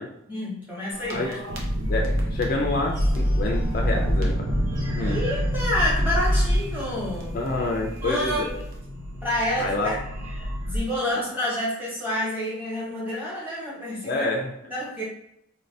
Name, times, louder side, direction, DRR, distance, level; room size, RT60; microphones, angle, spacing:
voice 1, 0.3-1.4 5.0-7.4 8.0-8.4 9.2-9.9 10.4-14.3 14.7-15.0, left 1 dB, 10° right, -7 dB, 1.2 m, -28 dB
sound 1, 0.9-10.8, equal, 70° right, 0.7 m, -27 dB
voice 2, 1.9-4.5 4.9-5.2 7.3-8.6 9.6-9.9 11.1-11.2 14.1-14.5, left 2 dB, 45° left, 1 dB, 0.4 m, -28 dB
Wind instrument woodwind instrument, 2.6-6.8, left 1 dB, 50° right, 1.0 m, -41 dB
2.8 x 2.7 x 3.2 m, 0.79 s
head